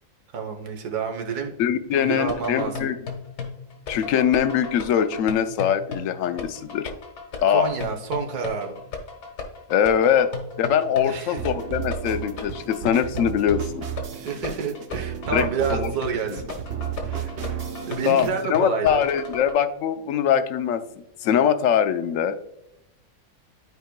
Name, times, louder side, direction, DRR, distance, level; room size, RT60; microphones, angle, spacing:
voice 1, 0.3-1.5 1.9-2.9 7.5-8.8 11.0-11.4 14.1-16.6 17.1-19.0, right 5 dB, 80° right, 3 dB, 1.5 m, -29 dB
voice 2, 1.6-2.9 3.9-6.9 7.4-7.7 9.7-10.3 10.6-13.9 15.3-15.9 18.1-20.8 21.2-22.4, left 8 dB, 70° left, 10 dB, 0.8 m, -22 dB
sound 1, 2.0-19.5, left 4 dB, 85° left, 1.7 m, -36 dB
sound 2, 11.4-18.5, right 9 dB, 55° right, 0.8 m, -33 dB
12.5 x 4.6 x 2.2 m, 0.83 s
omnidirectional pair, 1.7 m